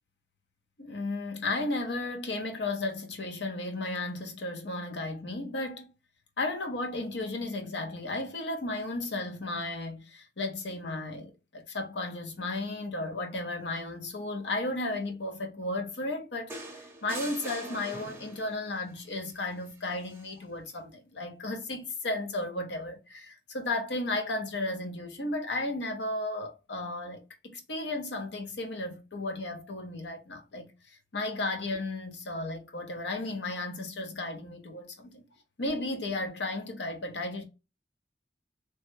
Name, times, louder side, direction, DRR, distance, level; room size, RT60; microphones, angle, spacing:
voice 1, 0.8-5.9 6.4-16.5 17.0-30.7 31.1-35.2 35.6-37.4, left 2 dB, 85° left, 0.8 m, -34 dB
sound 1, 16.5-18.6 20.0-20.3, right 2 dB, 15° right, 0.8 m, -42 dB
3.2 x 2.2 x 3.1 m
head